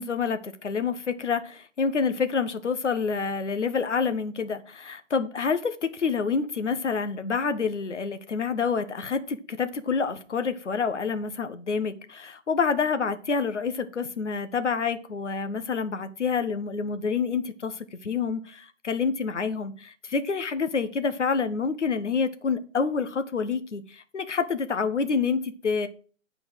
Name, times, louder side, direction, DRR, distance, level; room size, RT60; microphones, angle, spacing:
voice 1, 0.0-25.9, left 5 dB, 65° left, 10 dB, 1.2 m, -28 dB
8.6 x 4.8 x 6.2 m, 0.41 s
figure-of-eight pair, 140°, 37 cm